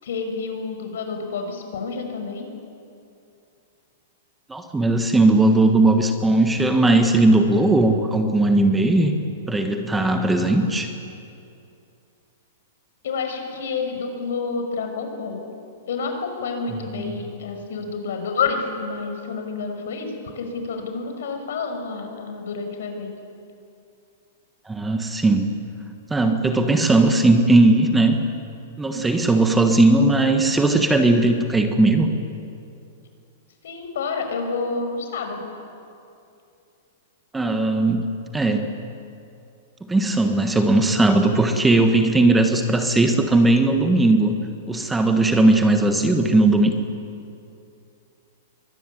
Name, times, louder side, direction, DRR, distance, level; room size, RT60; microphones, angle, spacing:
voice 1, 0.0-2.5 13.0-15.5 15.9-23.1 33.6-35.5, left 4 dB, 75° left, 4 dB, 5.8 m, -29 dB
voice 2, 4.5-9.1 9.5-10.9 16.9-17.2 24.7-25.5 26.1-28.2 28.8-32.1 37.3-38.1 38.3-38.7 39.9-44.4 44.7-46.7, right 2 dB, 5° right, 5 dB, 1.4 m, -18 dB
23.0 x 20.5 x 9.9 m, 2.6 s
hypercardioid pair, 160°, 0 cm